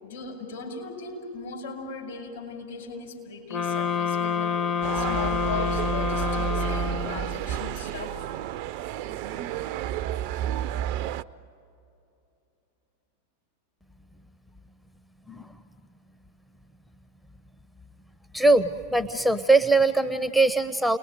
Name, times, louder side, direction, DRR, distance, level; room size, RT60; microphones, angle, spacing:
voice 1, 0.0-4.6 4.9-8.2, left 5 dB, 65° left, 1 dB, 5.6 m, -37 dB
sound 1, 3.5-7.4, left 6 dB, 30° left, 0.9 m, -28 dB
sound 2, 4.8-11.2, right 11 dB, 45° right, 0.5 m, -31 dB
voice 2, 18.3-21.0, right 2 dB, ahead, 12 dB, 0.7 m, -21 dB
29.0 x 20.5 x 9.3 m, 2.9 s
figure-of-eight pair, 90°, 0 cm